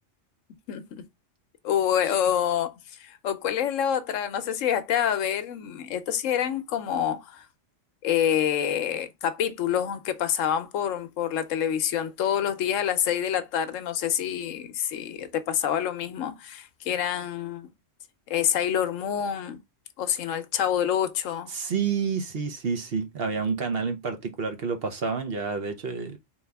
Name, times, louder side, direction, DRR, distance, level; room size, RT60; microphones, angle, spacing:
voice 1, 0.7-1.0 1.6-2.7 3.0-7.4 8.0-17.7 18.3-19.6 20.0-21.5, left 9 dB, 80° left, 1.0 m, -27 dB
voice 2, 21.5-26.2, right 5 dB, 55° right, 1.0 m, -29 dB
3.9 x 2.9 x 3.3 m
omnidirectional pair, 1.3 m